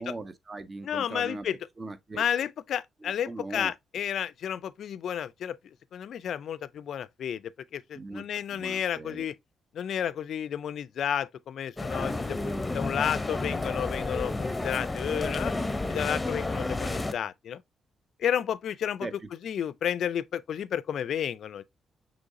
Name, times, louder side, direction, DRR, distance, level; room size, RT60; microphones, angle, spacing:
voice 1, 0.0-1.5 1.8-2.2 3.0-3.7 7.9-9.3 19.0-19.3, right 3 dB, 35° right, 0.7 m, -40 dB
voice 2, 0.8-1.6 2.2-5.6 5.9-9.3 9.7-15.5 15.9-17.6 18.2-19.1 19.4-21.6, left 9 dB, 70° left, 0.3 m, -31 dB
sound 1, 11.8-17.1, left 2 dB, 20° left, 0.7 m, -31 dB
6.1 x 3.1 x 2.6 m
supercardioid pair, 50°, 0 cm